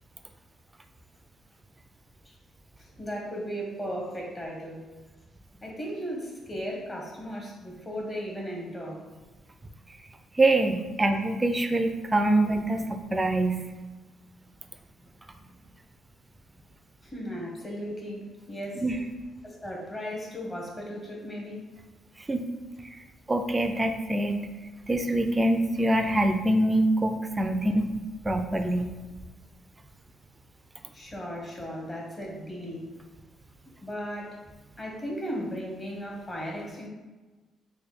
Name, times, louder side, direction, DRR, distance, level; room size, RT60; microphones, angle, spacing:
voice 1, 2.8-4.9 5.6-9.1 11.0-11.1 17.0-18.8 19.4-21.6 30.9-32.9 33.8-34.4 34.8-36.9, equal, 20° left, -2 dB, 1.0 m, -36 dB
voice 2, 10.4-13.6 18.8-19.0 22.3-22.4 23.3-24.4 24.9-28.0 28.2-28.9, right 1 dB, 20° right, 7 dB, 0.4 m, -24 dB
3.3 x 2.2 x 4.3 m, 1.2 s
cardioid pair, 90°, 0 cm